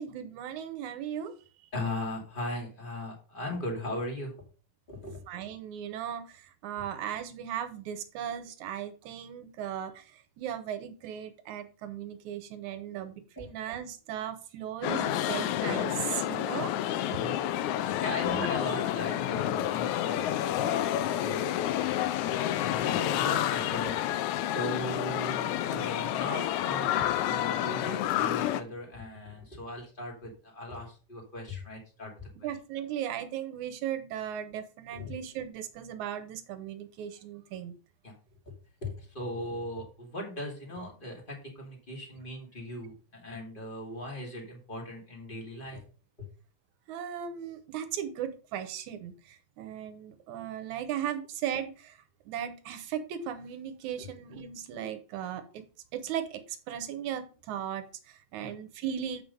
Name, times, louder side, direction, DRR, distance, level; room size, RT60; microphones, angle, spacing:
voice 1, 0.0-1.3 5.3-17.2 18.2-18.5 32.4-37.7 46.9-52.0 52.3-55.6 55.9-59.2, right 9 dB, 85° right, 9 dB, 2.4 m, -37 dB
voice 2, 1.7-4.3 4.9-5.2 6.7-6.8 13.4-13.5 17.2-17.4 17.8-23.9 24.4-32.5 34.9-35.1 38.0-38.1 38.8-45.8 46.2-46.3 54.0-54.1 58.4-58.5 59.0-59.1, left 1 dB, 20° left, 0 dB, 2.3 m, -38 dB
sound 1, 14.8-28.6, left 12 dB, 90° left, 2.1 m, -29 dB
8.0 x 5.6 x 5.2 m, 0.36 s
omnidirectional pair, 3.3 m